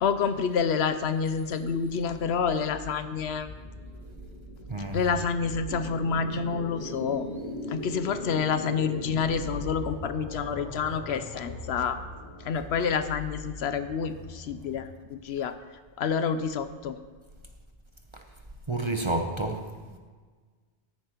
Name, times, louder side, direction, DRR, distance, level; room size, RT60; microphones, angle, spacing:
voice 1, 0.0-3.5 4.9-7.3 7.7-12.0 12.4-15.5 16.0-17.0, left 6 dB, 70° left, 10 dB, 0.8 m, -28 dB
sound 1, 2.1-15.1, left 1 dB, 90° left, 2.0 m, -40 dB
voice 2, 18.7-19.6 19.9-20.0, right 2 dB, 30° right, 4 dB, 0.7 m, -29 dB
14.0 x 10.0 x 3.0 m, 1.5 s
omnidirectional pair, 1.1 m